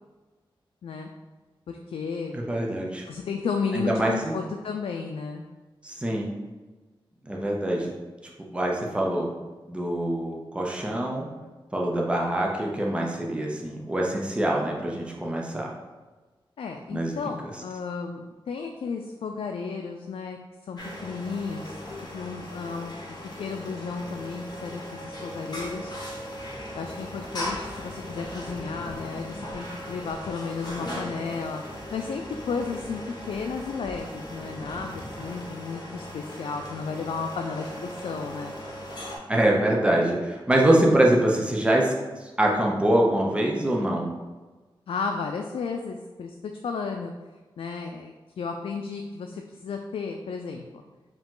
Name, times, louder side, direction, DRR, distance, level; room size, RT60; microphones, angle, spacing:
voice 1, 1.7-2.4 3.1-5.4 16.6-20.4 20.6-21.8 22.1-25.9 26.7-38.5 44.9-47.1 47.6-50.8, left 5 dB, 85° left, 3 dB, 0.3 m, -33 dB
voice 2, 2.3-3.0 3.7-4.3 5.8-6.3 7.2-7.9 8.5-9.3 9.7-11.3 11.7-15.7 16.9-17.1 39.3-41.9 42.4-44.1, right 1 dB, 10° right, -1 dB, 0.7 m, -24 dB
sound 1, 20.8-39.2, equal, 50° left, 1.0 m, -38 dB
4.8 x 2.9 x 3.7 m, 1.2 s
wide cardioid pair, 125°, 9 cm